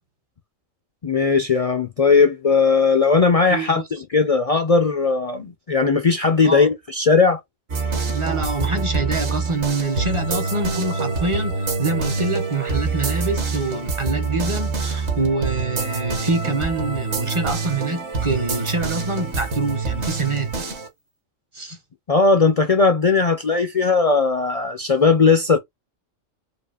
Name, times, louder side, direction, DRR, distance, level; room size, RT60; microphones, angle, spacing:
voice 1, 1.0-7.4 22.1-25.6, left 4 dB, 70° left, 0.3 m, -18 dB
voice 2, 3.5-3.8 6.4-6.7 8.1-20.7 21.5-21.8, right 3 dB, 35° right, 0.5 m, -26 dB
sound 1, 7.7-20.9, right 4 dB, 60° right, 1.3 m, -26 dB
5.0 x 2.3 x 2.4 m
omnidirectional pair, 1.4 m